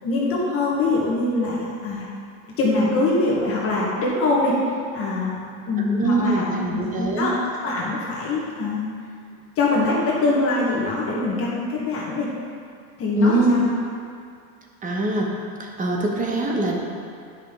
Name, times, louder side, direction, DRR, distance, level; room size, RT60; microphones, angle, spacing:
voice 1, 0.0-2.1 2.6-4.6 4.9-5.4 5.7-7.3 7.6-8.8 9.6-12.3 13.0-13.7, left 2 dB, 35° left, -4 dB, 1.3 m, -23 dB
voice 2, 5.9-7.3 13.1-13.5 14.8-15.3 15.6-16.8, right 2 dB, 20° right, 0 dB, 1.0 m, -22 dB
10.5 x 5.4 x 3.7 m, 2.3 s
supercardioid pair, 135°, 40 cm